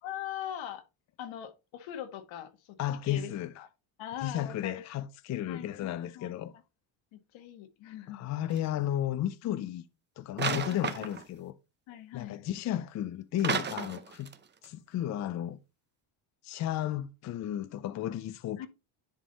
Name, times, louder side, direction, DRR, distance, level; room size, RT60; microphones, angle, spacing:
voice 1, 0.0-0.8 1.2-2.8 3.0-3.7 4.0-4.8 5.4-6.3 7.1-8.2 10.4-10.9 11.9-12.4 18.6-18.7, left 10 dB, 70° left, 1.5 m, -41 dB
voice 2, 2.8-3.5 4.2-6.5 8.1-9.8 10.2-11.5 12.1-14.3 14.6-15.6 16.4-18.7, left 12 dB, 40° left, 0.4 m, -33 dB
sound 1, 8.5-8.7 10.4-11.4 13.4-14.4 14.6-14.7, right 6 dB, 25° right, 0.7 m, -33 dB
10.5 x 3.7 x 3.9 m
cardioid pair, 135°, 47 cm